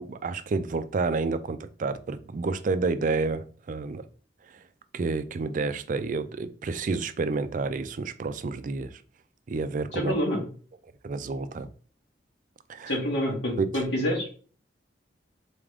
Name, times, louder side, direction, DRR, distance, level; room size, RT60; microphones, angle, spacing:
voice 1, 0.0-4.0 4.9-9.0 9.5-10.1 11.0-11.7 12.7-13.0 13.6-13.7, right 4 dB, 45° right, 0.4 m, -29 dB
voice 2, 9.9-10.4 12.9-14.3, equal, 85° left, 2.2 m, -27 dB
4.2 x 3.6 x 3.5 m
head